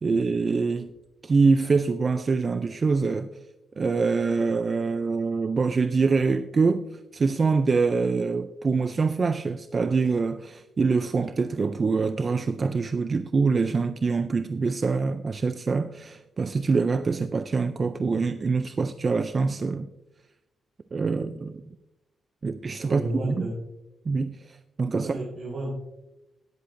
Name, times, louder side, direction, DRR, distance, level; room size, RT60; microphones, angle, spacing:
voice 1, 0.0-0.9 1.2-3.3 3.8-6.8 7.1-19.9 20.9-21.6 22.4-23.5 24.1-25.2, right 4 dB, 30° right, 0.3 m, -25 dB
voice 2, 22.8-23.5 25.0-25.7, right 2 dB, 55° right, 3.5 m, -32 dB
18.0 x 8.1 x 2.5 m
wide cardioid pair, 175°, 0 cm